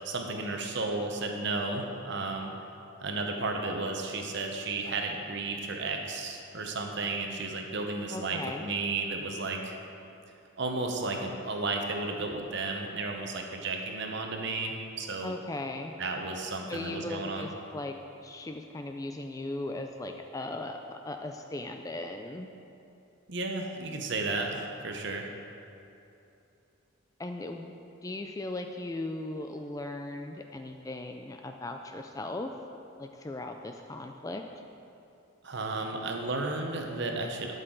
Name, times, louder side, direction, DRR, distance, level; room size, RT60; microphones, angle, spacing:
voice 1, 0.0-2.5 3.0-9.8 10.6-15.3 16.0-17.5 23.3-25.3 35.4-37.6, right 3 dB, 55° right, 2 dB, 0.9 m, -33 dB
voice 2, 8.1-8.6 15.2-15.9 16.7-18.0 18.2-22.5 27.2-27.7 28.0-32.5 33.0-34.4, left 2 dB, 15° left, 5 dB, 0.3 m, -38 dB
12.5 x 6.6 x 3.8 m, 2.8 s
head